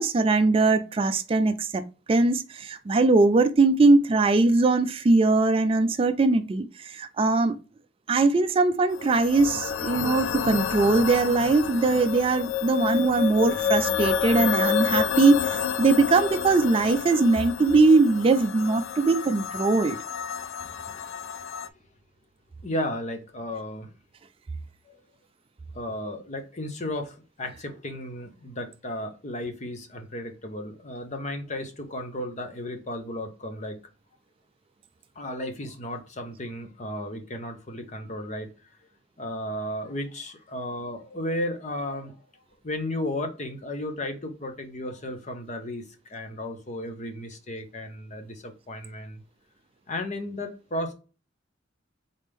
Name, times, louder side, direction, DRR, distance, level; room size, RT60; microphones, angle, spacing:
voice 1, 0.0-1.8 2.1-7.6 8.1-20.0, right 3 dB, 30° right, 0.3 m, -21 dB
sound 1, 8.9-21.7, left 8 dB, 75° left, 0.3 m, -29 dB
voice 2, 20.4-21.1 21.4-21.5 22.6-23.9 24.8-25.0 25.7-33.8 35.1-38.7 39.2-42.2 42.6-49.2 49.9-50.9, left 1 dB, 40° left, 0.9 m, -34 dB
4.1 x 3.4 x 3.4 m
head